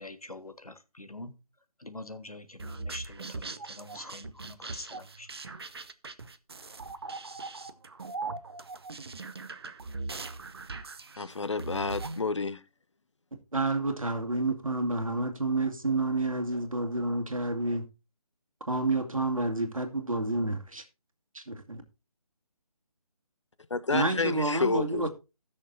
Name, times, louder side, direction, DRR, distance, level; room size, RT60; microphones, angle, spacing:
voice 1, 0.0-1.3 1.8-5.3, left 2 dB, 85° left, 1.6 m, -45 dB
sound 1, 2.6-12.2, right 3 dB, 45° right, 0.8 m, -40 dB
voice 2, 11.2-12.6 23.7-25.1, left 4 dB, 55° left, 0.5 m, -30 dB
voice 3, 13.5-17.9 18.7-20.8 21.3-21.8 23.9-25.1, right 2 dB, 65° right, 2.1 m, -29 dB
19.0 x 6.5 x 2.7 m
figure-of-eight pair, 155°, 19 cm